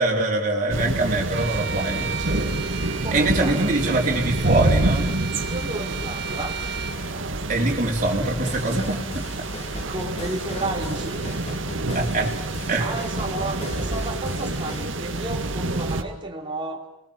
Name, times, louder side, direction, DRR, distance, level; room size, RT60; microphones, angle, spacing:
voice 1, 0.0-5.2 7.5-9.3 11.9-12.4 12.7-13.0, right 2 dB, 40° right, -1 dB, 4.6 m, -24 dB
sound 1, 0.7-16.0, right 2 dB, 90° right, 2.0 m, -27 dB
Bowed string instrument, 1.3-7.0, right 6 dB, 60° right, 1.7 m, -34 dB
voice 2, 2.9-3.6 5.4-6.6 7.5-7.8 9.7-11.3 12.8-16.9, right 2 dB, 25° right, 1 dB, 3.6 m, -32 dB
sound 2, 8.0-14.9, left 2 dB, 35° left, 2.0 m, -38 dB
30.0 x 21.0 x 7.6 m, 0.78 s
head